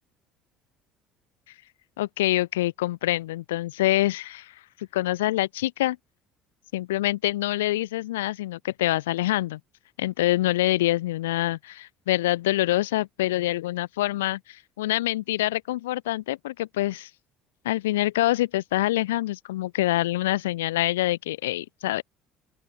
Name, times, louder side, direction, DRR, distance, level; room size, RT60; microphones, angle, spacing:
voice 1, 2.0-4.5 4.8-6.0 6.7-9.6 10.0-17.1 17.6-22.0, left 16 dB, 85° left, 1.2 m, -25 dB
open air
hypercardioid pair, 70°, 0 cm